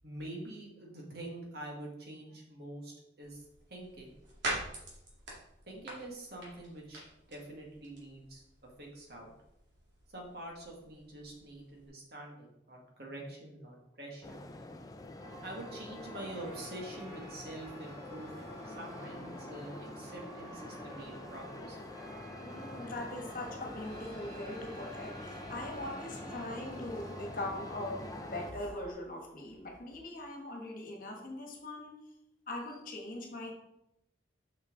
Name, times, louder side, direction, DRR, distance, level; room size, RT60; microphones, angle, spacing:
voice 1, 0.0-3.5 3.7-4.1 5.7-9.3 10.1-14.4 15.4-21.8, right 1 dB, 55° right, -1 dB, 1.7 m, -46 dB
sound 1, 3.2-11.9, right 1 dB, 75° right, 2.3 m, -45 dB
sound 2, 14.2-28.5, left 2 dB, 20° left, 0.4 m, -46 dB
sound 3, 15.2-28.9, equal, 35° right, 2.3 m, -51 dB
voice 2, 22.4-28.0 28.3-31.9 32.5-33.5, left 1 dB, 45° left, 1 dB, 1.4 m, -41 dB
6.4 x 5.8 x 3.9 m, 0.85 s
head